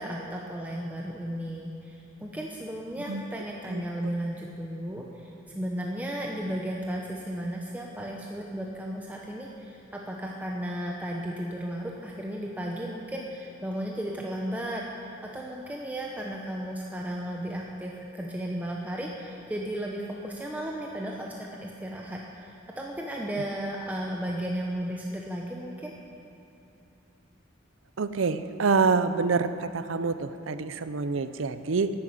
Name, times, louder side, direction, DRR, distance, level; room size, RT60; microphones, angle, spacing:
voice 1, 0.0-5.3 5.5-14.8 15.2-22.5 22.8-25.9, equal, 10° right, -2 dB, 0.8 m, -34 dB
voice 2, 28.0-29.5 29.7-31.9, right 4 dB, 80° right, 11 dB, 0.6 m, -26 dB
11.0 x 9.5 x 7.8 m, 2.8 s
head